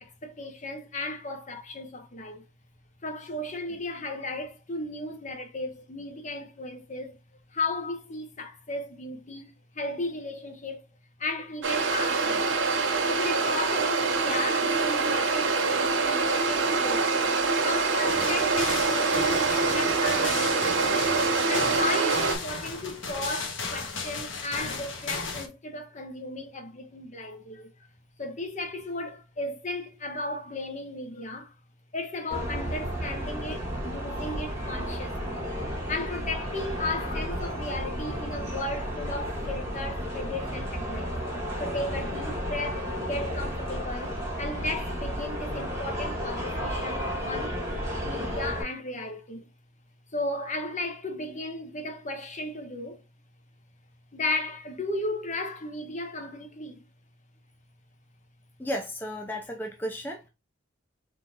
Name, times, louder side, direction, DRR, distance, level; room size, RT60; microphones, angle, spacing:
voice 1, 0.0-2.4 3.0-7.2 7.5-10.9 11.2-12.5 13.1-17.1 17.6-21.0 21.5-27.9 28.2-31.5 31.9-35.4 35.9-41.2 41.6-47.6 48.0-49.5 50.1-53.0 54.1-56.8, left 2 dB, 40° left, 1.0 m, -35 dB
sound 1, 11.6-22.4, right 4 dB, 90° right, 1.0 m, -25 dB
sound 2, 18.1-25.5, left 4 dB, 85° left, 1.1 m, -35 dB
sound 3, 32.3-48.6, equal, 15° right, 1.8 m, -33 dB
voice 2, 58.6-60.3, equal, 10° left, 0.5 m, -34 dB
4.2 x 3.8 x 2.8 m
head